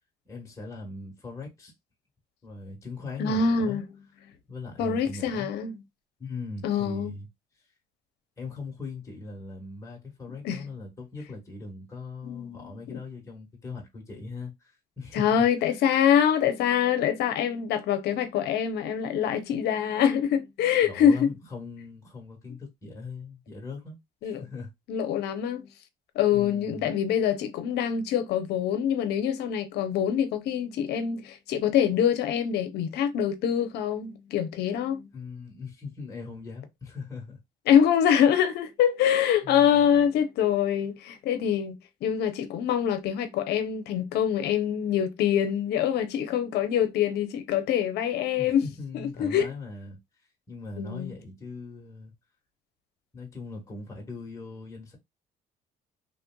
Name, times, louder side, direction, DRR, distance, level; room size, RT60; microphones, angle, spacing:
voice 1, 0.3-1.7 2.4-3.8 4.5-5.5 6.2-7.3 8.4-15.5 20.8-24.0 24.2-24.7 26.3-26.9 35.1-37.4 39.4-40.0 48.4-50.0 50.5-52.1 53.1-55.0, left 3 dB, 20° left, 1.3 m, -40 dB
voice 2, 3.2-3.8 4.8-5.8 6.6-7.1 10.4-10.7 12.2-13.0 15.1-21.3 24.2-24.4 24.9-25.7 26.1-35.1 37.7-48.6 48.9-49.5 50.8-51.1, left 8 dB, 75° left, 0.7 m, -25 dB
3.2 x 2.5 x 2.2 m
cardioid pair, 110°, 17 cm